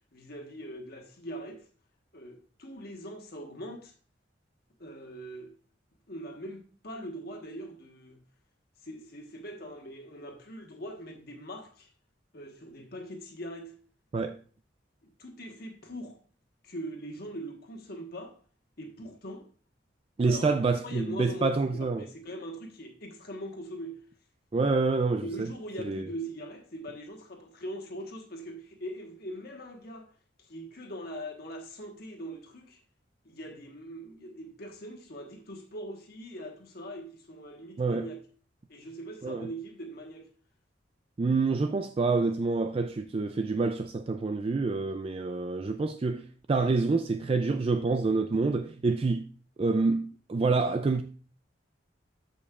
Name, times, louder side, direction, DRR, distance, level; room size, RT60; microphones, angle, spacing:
voice 1, 0.1-1.6 2.1-3.9 4.8-5.5 6.1-8.2 8.8-11.9 12.3-13.7 15.2-16.2 16.6-18.4 18.8-19.5 20.2-20.5 20.8-24.0 25.2-30.1 30.4-32.8 33.2-38.2 38.7-40.3, equal, 55° left, 1.3 m, -41 dB
voice 2, 20.2-22.0 24.5-25.5 25.8-26.1 37.8-38.1 39.2-39.5 41.2-49.2 49.6-51.0, right 3 dB, 30° right, 0.3 m, -27 dB
13.5 x 5.3 x 2.4 m
head